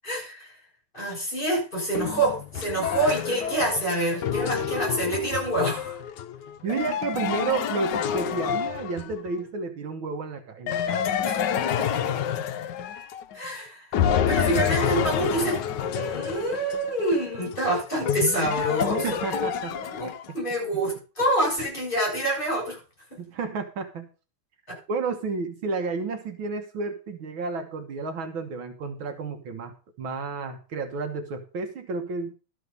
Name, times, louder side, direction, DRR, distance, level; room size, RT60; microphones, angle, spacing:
voice 1, 0.0-0.5 0.9-6.0 11.2-12.4 13.3-14.0 14.3-15.6 15.9-19.0 19.3-19.4 19.9-22.8 23.1-23.2 24.7-24.8, right 1 dB, 20° left, -1 dB, 7.0 m, -27 dB
sound 1, 1.9-9.3 10.7-13.5 13.9-20.4, left 8 dB, 65° left, 1.2 m, -28 dB
voice 2, 6.6-11.1 18.9-19.8 20.7-20.8 23.2-24.1 24.9-32.3, right 4 dB, 70° right, 6 dB, 2.0 m, -31 dB
12.5 x 6.6 x 5.3 m, 0.34 s
omnidirectional pair, 2.3 m